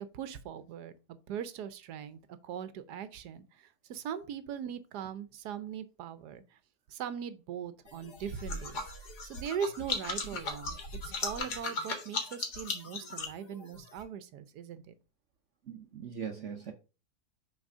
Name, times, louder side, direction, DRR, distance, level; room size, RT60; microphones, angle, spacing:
voice 1, 0.0-6.4 6.9-8.8 9.2-10.8 11.0-14.9, right 8 dB, 85° right, 1.3 m, -40 dB
sound 1, 7.9-14.0, left 3 dB, 80° left, 2.2 m, -37 dB
voice 2, 15.7-16.7, right 7 dB, 55° right, 1.0 m, -40 dB
6.1 x 4.3 x 5.4 m
omnidirectional pair, 1.7 m